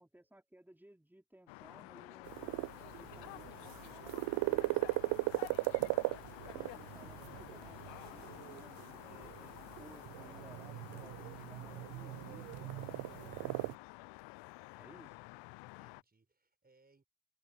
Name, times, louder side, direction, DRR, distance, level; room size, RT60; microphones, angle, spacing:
voice 1, 0.0-4.8 6.5-12.7 13.1-13.7 14.8-15.1, right 1 dB, 5° right, 4.9 m, -60 dB
sound 1, 1.5-16.0, left 25 dB, 65° left, 0.9 m, -51 dB
sound 2, 2.2-13.7, right 22 dB, 50° right, 0.4 m, -39 dB
voice 2, 14.9-17.1, right 3 dB, 20° right, 4.7 m, -73 dB
hypercardioid pair, 60°, 47 cm